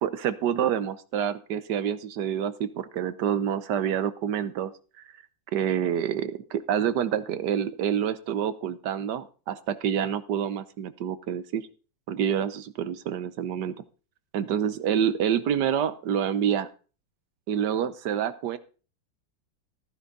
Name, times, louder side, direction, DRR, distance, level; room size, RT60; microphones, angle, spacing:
voice 1, 0.0-4.7 5.5-11.7 12.1-13.8 14.3-16.7 17.5-18.6, right 9 dB, 70° right, 14 dB, 1.4 m, -27 dB
14.5 x 10.0 x 4.0 m, 0.36 s
omnidirectional pair, 2.0 m